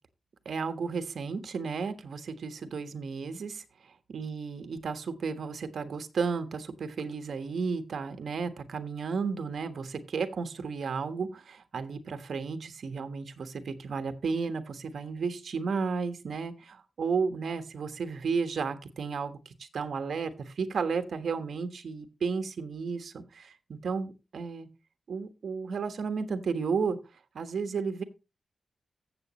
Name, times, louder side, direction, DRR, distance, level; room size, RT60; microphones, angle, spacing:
voice 1, 0.4-3.6 4.1-24.7 25.1-27.0 27.3-28.0, right 5 dB, 70° right, 10 dB, 1.3 m, -33 dB
14.5 x 7.9 x 3.1 m, 0.28 s
wide cardioid pair, 155°, 0 cm